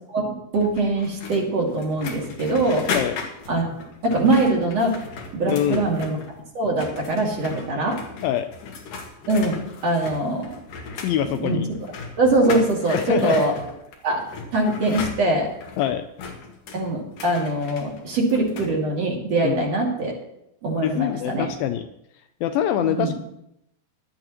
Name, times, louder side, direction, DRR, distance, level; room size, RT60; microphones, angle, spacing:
voice 1, 0.5-2.9 3.5-3.7 4.0-5.0 5.3-6.2 6.5-8.0 9.3-10.5 11.4-11.8 12.2-13.5 14.0-14.2 14.5-15.5 16.7-20.1 20.6-21.5 22.8-23.1, right 2 dB, 45° right, -2 dB, 3.3 m, -22 dB
sound 1, 0.6-6.4 6.7-18.7, left 4 dB, 60° left, 3.0 m, -36 dB
voice 2, 5.5-5.9 8.2-8.5 11.0-11.7 13.0-13.4 15.8-16.1 19.4-19.6 20.8-21.9 22.4-23.1, left 10 dB, 85° left, 9 dB, 2.0 m, -24 dB
17.5 x 12.5 x 3.0 m, 0.81 s
omnidirectional pair, 4.7 m